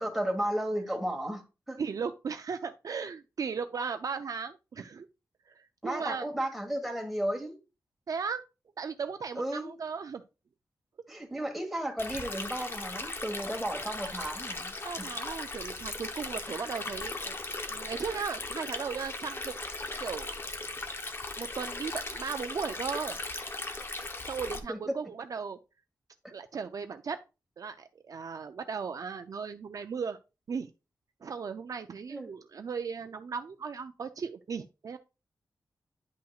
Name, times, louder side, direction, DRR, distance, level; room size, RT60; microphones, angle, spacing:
voice 1, 0.0-1.8 5.8-7.5 9.4-9.8 11.1-15.0 24.7-24.8 32.1-32.3, right 1 dB, ahead, 1.4 m, -34 dB
voice 2, 1.8-5.1 5.5-6.3 8.1-8.4 8.8-10.2 14.8-17.4 17.7-19.5 20.0-20.4 21.4-23.2 24.2-25.6 26.3-27.2 27.6-30.2 30.5-30.7 31.2-35.0, right 6 dB, 55° right, 0.4 m, -36 dB
Stream, 12.0-24.6, left 2 dB, 35° left, 0.8 m, -38 dB
10.0 x 5.7 x 2.4 m
wide cardioid pair, 155°, 7 cm